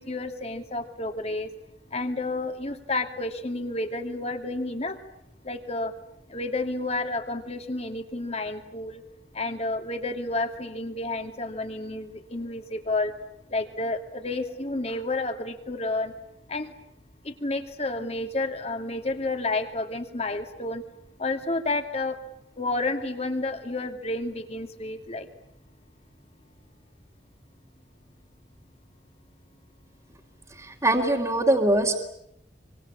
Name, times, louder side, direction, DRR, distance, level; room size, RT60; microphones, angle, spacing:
voice 1, 0.0-1.5 1.9-5.0 5.4-5.9 6.3-9.0 9.3-13.1 13.5-16.1 16.5-16.7 17.2-20.8 21.2-22.2 22.6-25.3, left 2 dB, 35° left, 6 dB, 2.6 m, -30 dB
voice 2, 30.6-32.0, right 1 dB, 20° right, -4 dB, 2.8 m, -22 dB
25.5 x 25.0 x 8.7 m, 0.77 s
head